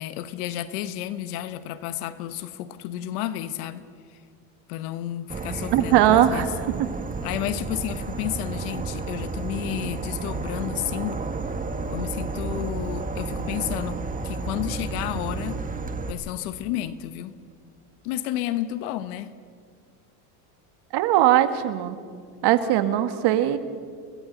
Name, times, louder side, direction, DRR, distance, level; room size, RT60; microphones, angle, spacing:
voice 1, 0.0-4.2 4.7-6.5 7.2-11.2 11.9-15.7 16.1-17.4 18.0-19.4, left 12 dB, 75° left, 1.3 m, -31 dB
Insect / Frog, 5.3-16.1, right 4 dB, 20° right, 1.4 m, -31 dB
voice 2, 5.7-6.5 6.8-6.9 20.9-22.0 22.4-23.6, right 12 dB, 60° right, 1.7 m, -20 dB
30.0 x 21.5 x 4.0 m
supercardioid pair, 105°, 45 cm